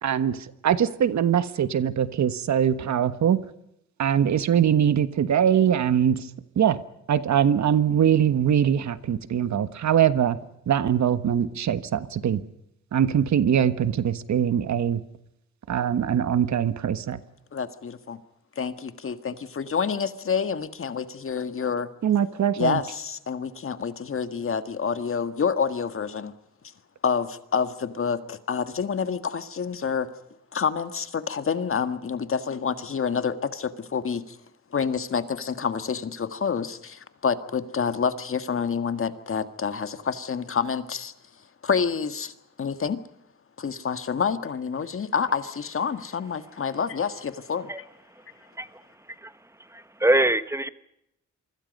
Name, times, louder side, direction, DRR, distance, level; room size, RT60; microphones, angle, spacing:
voice 1, 0.0-3.5 4.0-6.3 6.6-6.8 7.1-10.4 10.7-12.4 12.9-15.0 15.7-17.2 22.0-22.8, right 9 dB, 60° right, 1.4 m, -22 dB
voice 2, 17.5-18.2 18.6-21.9 22.6-26.3 27.0-30.1 30.5-34.4 34.7-41.1 41.6-42.3 42.6-43.0 43.6-47.7, left 6 dB, 45° left, 1.7 m, -28 dB
voice 3, 49.6-50.7, right 1 dB, 10° right, 1.3 m, -24 dB
27.5 x 24.5 x 5.4 m
cardioid pair, 120°, 31 cm